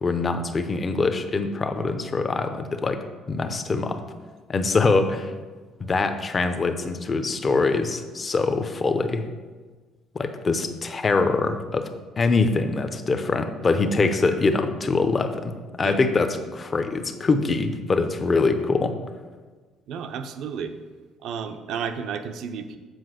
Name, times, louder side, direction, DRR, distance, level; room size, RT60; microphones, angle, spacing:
voice 1, 0.0-4.0 4.5-5.3 5.8-9.3 10.1-11.9 12.2-15.5 15.8-19.0, left 3 dB, 25° left, 8 dB, 0.6 m, -23 dB
voice 2, 19.9-20.7 21.2-22.8, right 7 dB, 65° right, 8 dB, 0.7 m, -32 dB
7.9 x 4.9 x 6.4 m, 1.4 s
cardioid pair, 150°, 0 cm